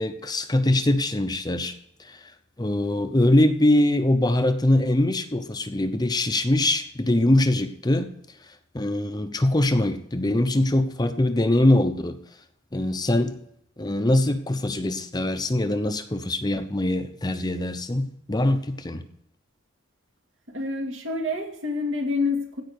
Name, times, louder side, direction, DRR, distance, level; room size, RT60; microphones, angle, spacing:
voice 1, 0.0-1.7 2.0-2.3 2.6-8.1 8.5-12.2 12.7-13.4 13.8-19.0, left 1 dB, 20° left, 9 dB, 0.7 m, -23 dB
voice 2, 20.5-22.6, left 3 dB, 70° right, 2 dB, 2.5 m, -27 dB
16.0 x 5.4 x 6.6 m, 0.73 s
head